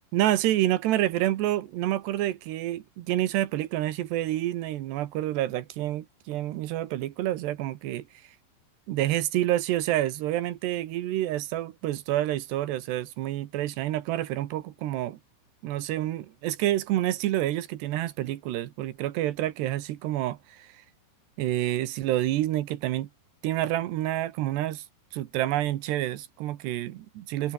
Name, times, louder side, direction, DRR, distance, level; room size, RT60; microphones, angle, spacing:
voice 1, 0.1-8.0 8.9-15.2 15.6-20.7 21.4-23.1 23.4-24.8 25.1-27.5, right 14 dB, 75° right, 3.3 m, -28 dB
omnidirectional pair, 5.1 m